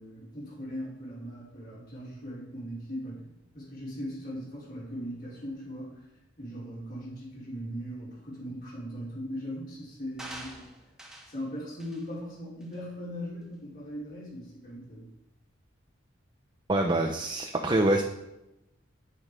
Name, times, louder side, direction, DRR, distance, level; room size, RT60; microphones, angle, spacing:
voice 1, 0.0-6.1 6.4-10.6 11.2-15.1, equal, 50° left, -8 dB, 5.0 m, -39 dB
sound 1, 10.2-11.4 11.8-12.1 12.6-12.7, right 1 dB, 5° right, 1.6 m, -45 dB
voice 2, 16.7-18.0, right 1 dB, 25° right, 2 dB, 0.9 m, -25 dB
9.8 x 9.7 x 5.2 m, 0.89 s
head